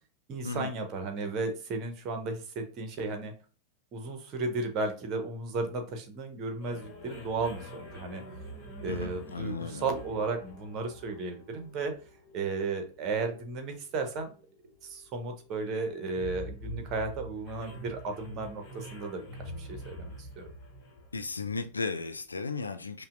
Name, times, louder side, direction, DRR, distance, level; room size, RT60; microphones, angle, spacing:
voice 1, 0.3-3.3 3.9-8.2 8.8-11.9 12.3-14.3 14.8-19.2 19.6-20.5, right 3 dB, 35° right, 1.0 m, -34 dB
sound 1, 6.6-22.0, equal, 35° left, 1.3 m, -46 dB
voice 2, 8.9-9.8 21.1-23.0, left 4 dB, 75° left, 0.4 m, -35 dB
5.4 x 2.3 x 2.5 m
figure-of-eight pair, 90°, 0 cm